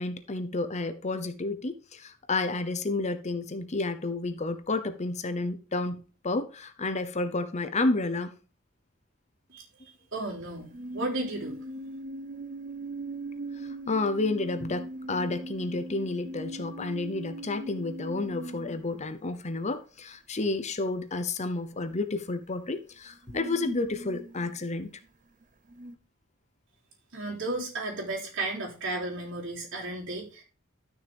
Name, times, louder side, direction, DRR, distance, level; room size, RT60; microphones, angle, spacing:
voice 1, 0.0-8.3 13.6-24.9, left 2 dB, 35° left, 0.8 m, -31 dB
voice 2, 9.5-11.6 27.1-30.4, right 2 dB, 65° right, 3.7 m, -34 dB
sound 1, 10.6-19.2 22.5-22.6 23.1-24.7 25.0-25.9, right 1 dB, 40° right, 0.7 m, -40 dB
12.5 x 6.3 x 3.5 m
head